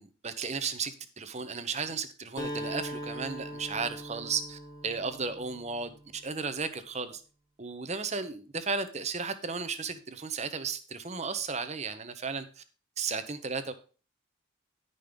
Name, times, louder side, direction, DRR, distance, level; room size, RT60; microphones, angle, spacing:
voice 1, 0.0-7.2 7.6-12.6 13.0-13.7, right 5 dB, 30° right, 11 dB, 0.9 m, -34 dB
Acoustic guitar, 2.4-6.2, equal, 20° left, 1.3 m, -40 dB
11.0 x 5.5 x 5.2 m, 0.38 s
head